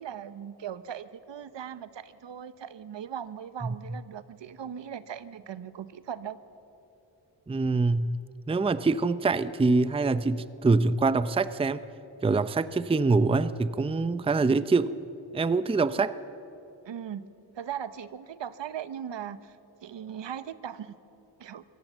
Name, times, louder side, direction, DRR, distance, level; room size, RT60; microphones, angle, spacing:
voice 1, 0.0-6.4 16.8-17.3 17.5-19.6 19.8-20.9 21.4-21.6, right 9 dB, 65° right, 14 dB, 0.9 m, -39 dB
voice 2, 7.5-8.2 8.5-11.8 12.2-14.9 15.3-16.2, right 3 dB, 10° right, 15 dB, 0.5 m, -25 dB
24.0 x 16.0 x 7.3 m, 2.9 s
cardioid pair, 80°, 47 cm